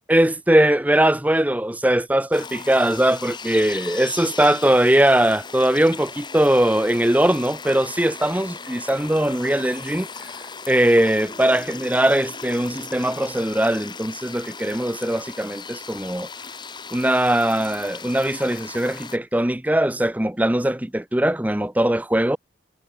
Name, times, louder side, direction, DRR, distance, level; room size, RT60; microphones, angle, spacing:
voice 1, 0.1-10.1 10.7-16.3 16.9-22.4, right 1 dB, 10° right, 0.6 m, -20 dB
sound 1, 2.3-19.2, left 5 dB, 25° left, 2.4 m, -37 dB
head